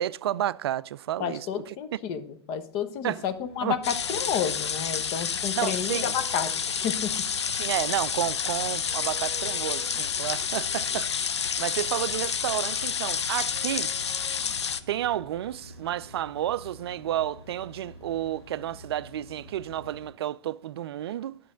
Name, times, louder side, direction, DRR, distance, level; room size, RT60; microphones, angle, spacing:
voice 1, 0.0-1.8 3.0-3.2 3.6-3.7 5.6-6.1 7.6-11.2 11.6-13.9 14.9-21.4, right 12 dB, 65° right, 0.4 m, -31 dB
voice 2, 1.2-7.1, left 8 dB, 40° left, 0.9 m, -31 dB
sound 1, 3.1-20.1, left 1 dB, 65° left, 3.6 m, -48 dB
sound 2, 3.2-4.0 6.1-7.3 8.9-11.1 12.2-12.3 13.3-16.3, right 6 dB, 10° right, 1.5 m, -50 dB
sound 3, 3.8-14.8, left 7 dB, 80° left, 0.5 m, -29 dB
10.0 x 6.5 x 3.7 m
hypercardioid pair, 105°, 14 cm